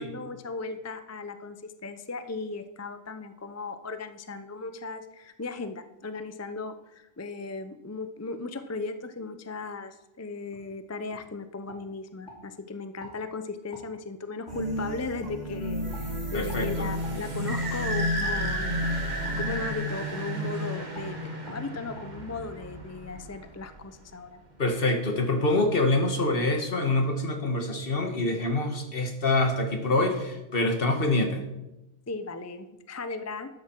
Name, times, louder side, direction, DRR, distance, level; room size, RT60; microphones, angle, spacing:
voice 1, 0.0-18.9 19.4-24.4 32.1-33.5, left 3 dB, 25° left, 9 dB, 0.4 m, -37 dB
sound 1, 10.5-10.7 11.1-11.2 11.7-12.4 13.0-13.2 13.7-13.9 14.5-14.6 15.2-15.3 15.9-16.1 16.5-16.6 17.0-17.2 17.6-17.7 18.2-18.4 19.2-19.4 19.9-20.1 20.4-20.6 20.9-21.1 21.4-21.6 21.9-22.1, left 1 dB, 75° left, 3.5 m, -46 dB
sound 2, 14.5-19.7, left 1 dB, 60° right, 3.0 m, -31 dB
voice 2, 16.3-16.9 24.6-31.4, left 2 dB, 50° left, 5 dB, 1.7 m, -25 dB
sound 3, 16.6-24.0, right 1 dB, 40° right, 1.6 m, -34 dB
12.5 x 9.5 x 4.5 m, 0.96 s
omnidirectional pair, 1.3 m